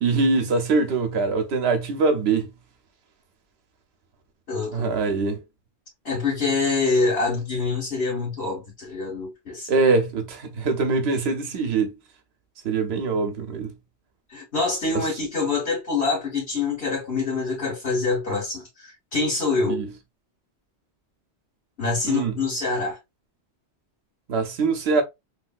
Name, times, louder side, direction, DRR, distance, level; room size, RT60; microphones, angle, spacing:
voice 1, 0.0-2.5 4.7-5.4 9.7-11.9 12.6-13.7 19.7-19.9 22.0-22.4 24.3-25.0, right 4 dB, 70° right, 1.0 m, -23 dB
voice 2, 4.5-4.9 6.1-9.7 14.3-19.8 21.8-23.0, left 3 dB, 65° left, 1.8 m, -25 dB
3.4 x 2.7 x 2.4 m
omnidirectional pair, 1.2 m